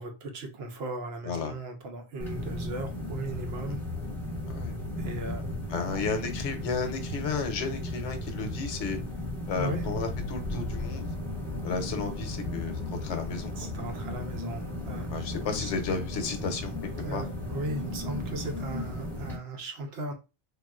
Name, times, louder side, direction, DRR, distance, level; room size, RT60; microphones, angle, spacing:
voice 1, 0.0-3.8 5.0-5.5 5.9-6.0 9.5-9.9 13.6-15.7 17.0-20.1, right 2 dB, 65° right, 0.8 m, -37 dB
sound 1, 2.2-19.4, left 1 dB, ahead, 0.8 m, -35 dB
voice 2, 5.7-9.0 9.5-11.0 11.6-13.5 15.1-16.8 17.1-17.2, left 4 dB, 75° left, 1.0 m, -33 dB
3.5 x 2.3 x 2.4 m
omnidirectional pair, 1.3 m